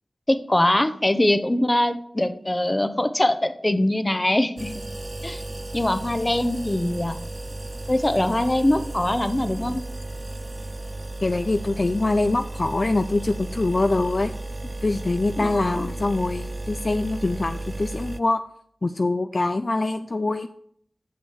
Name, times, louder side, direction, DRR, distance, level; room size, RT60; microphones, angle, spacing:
voice 1, 0.3-4.7 5.2-5.4 5.7-7.2 7.9-9.8 15.4-15.9, left 1 dB, 25° left, 10 dB, 0.8 m, -22 dB
sound 1, 4.6-18.2, right 2 dB, 35° right, 0.4 m, -34 dB
voice 2, 11.2-14.3 14.8-18.4 18.8-20.5, left 2 dB, 55° left, 8 dB, 0.4 m, -24 dB
6.3 x 5.9 x 7.3 m, 0.64 s
wide cardioid pair, 50°, 0 cm